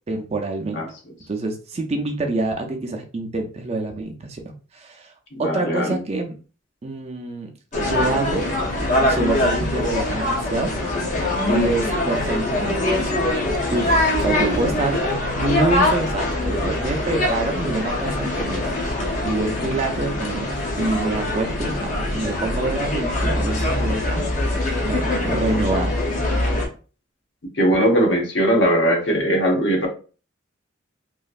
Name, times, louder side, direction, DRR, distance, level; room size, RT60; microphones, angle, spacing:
voice 1, 0.1-0.8 1.3-5.1 5.4-6.4 6.8-7.5 7.8-8.4 9.0-10.7 11.5-13.1 13.7-20.5 20.8-24.3 24.8-25.9, right 2 dB, 30° right, 4 dB, 0.4 m, -26 dB
voice 2, 5.3-6.0 27.5-29.9, equal, 65° left, 1 dB, 0.9 m, -19 dB
sound 1, 7.7-26.7, left 1 dB, 40° left, 0.7 m, -23 dB
3.0 x 2.5 x 2.4 m, 0.37 s
head